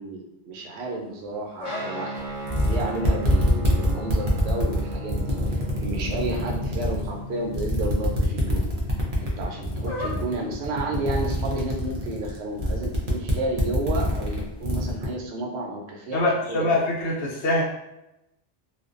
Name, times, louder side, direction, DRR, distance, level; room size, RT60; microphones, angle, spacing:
voice 1, 0.0-2.3 2.6-8.7 9.2-16.7, right 2 dB, 70° right, 0 dB, 0.8 m, -32 dB
sound 1, 0.7-12.6, left 2 dB, 55° left, 0.5 m, -44 dB
Guitar, 1.6-11.4, equal, 25° left, 0.8 m, -37 dB
sound 2, 2.2-2.3 2.5-7.1 7.5-15.1, equal, 50° right, 0.4 m, -25 dB
voice 2, 16.1-17.6, left 2 dB, 70° left, -3 dB, 1.0 m, -24 dB
2.5 x 2.2 x 2.4 m, 0.89 s
omnidirectional pair, 1.2 m